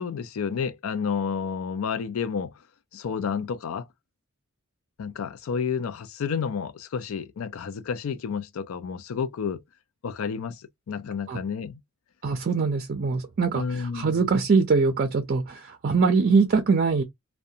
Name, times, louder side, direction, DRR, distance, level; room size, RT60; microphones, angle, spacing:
voice 1, 0.0-2.5 2.9-3.9 5.0-9.6 10.0-11.8 13.5-14.2, left 6 dB, 70° left, 0.4 m, -30 dB
voice 2, 12.2-17.0, right 4 dB, 45° right, 0.4 m, -23 dB
2.4 x 2.1 x 2.7 m
head